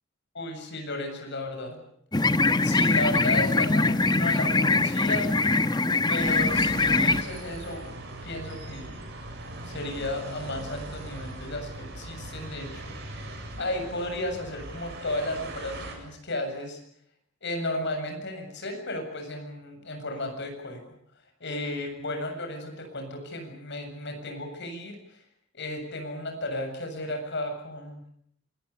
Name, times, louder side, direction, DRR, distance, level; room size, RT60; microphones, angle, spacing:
voice 1, 0.3-1.8 2.6-5.3 6.1-7.9 8.2-8.9 9.6-12.9 13.6-16.8 17.4-20.8 21.4-25.2 25.5-28.0, left 1 dB, 60° left, 5 dB, 7.5 m, -34 dB
sound 1, 2.1-7.2, left 3 dB, 20° left, 1.0 m, -23 dB
sound 2, 6.2-15.9, right 1 dB, 60° right, 7.8 m, -40 dB
27.0 x 20.5 x 8.5 m, 0.68 s
head